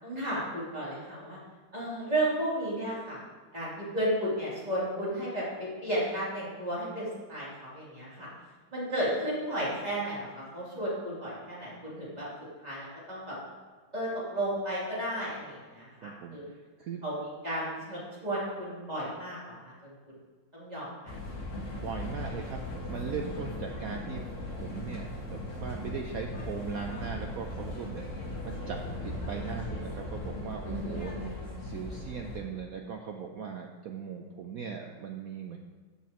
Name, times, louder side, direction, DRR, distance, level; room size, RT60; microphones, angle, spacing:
voice 1, 0.0-1.4 1.7-3.2 3.5-8.3 8.7-12.3 12.6-13.4 13.9-16.5 17.0-19.9 20.5-21.2 30.7-31.1, right 1 dB, 20° right, -8 dB, 3.1 m, -33 dB
voice 2, 16.0-16.4 16.8-17.0 21.7-35.6, right 6 dB, 75° right, 3 dB, 0.8 m, -39 dB
sound 1, 21.1-32.4, left 1 dB, 40° left, 1.6 m, -38 dB
13.5 x 7.2 x 3.0 m, 1.4 s
omnidirectional pair, 2.2 m